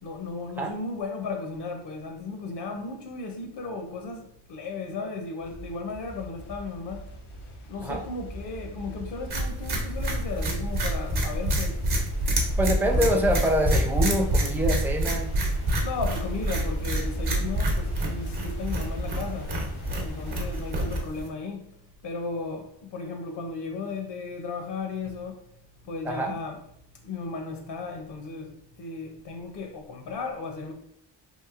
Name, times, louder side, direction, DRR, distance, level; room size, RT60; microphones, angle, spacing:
voice 1, 0.0-7.1 7.7-11.8 12.9-13.7 15.8-19.6 20.0-25.5 25.8-26.6 27.0-30.7, left 4 dB, 65° left, 0.6 m, -35 dB
sound 1, 5.4-21.1, equal, 85° left, 1.0 m, -37 dB
sound 2, 9.3-21.3, right 1 dB, 55° right, 0.9 m, -27 dB
voice 2, 12.6-15.3 26.0-26.3, equal, 5° right, 0.4 m, -25 dB
3.1 x 2.6 x 2.4 m
cardioid pair, 80°, 46 cm